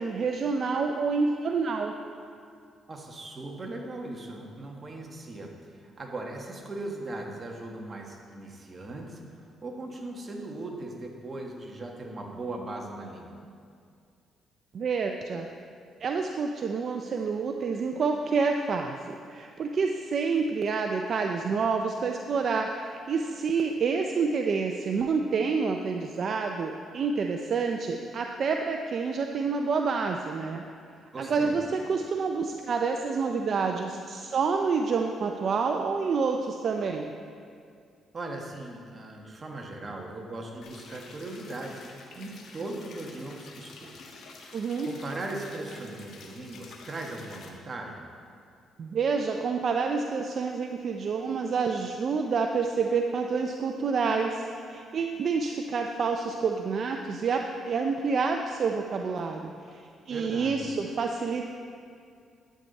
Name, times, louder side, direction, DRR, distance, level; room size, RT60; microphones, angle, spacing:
voice 1, 0.0-1.9 14.7-15.5 16.0-30.6 31.2-37.1 44.5-44.9 48.8-61.5, right 5 dB, 55° right, 4 dB, 0.6 m, -28 dB
voice 2, 2.9-13.5 31.1-31.6 38.1-44.0 44.4-44.5 44.8-48.1 60.1-60.7, right 2 dB, 30° right, 1 dB, 1.6 m, -39 dB
sound 1, 40.6-47.5, left 4 dB, 70° left, 1.3 m, -49 dB
12.0 x 8.4 x 4.2 m, 2.3 s
cardioid pair, 90°, 0 cm